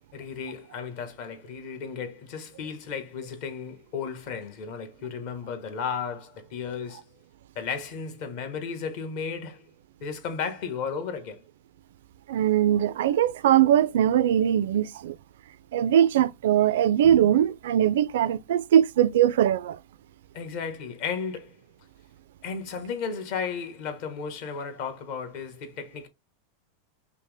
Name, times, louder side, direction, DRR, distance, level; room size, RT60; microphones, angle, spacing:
voice 1, 0.1-7.2 7.5-9.7 10.0-11.4 20.3-21.6 22.4-26.1, left 6 dB, 50° left, 1.2 m, -34 dB
voice 2, 12.3-15.2 15.7-19.8, right 10 dB, 80° right, 0.4 m, -21 dB
5.5 x 2.1 x 3.3 m
supercardioid pair, 155°, 0 cm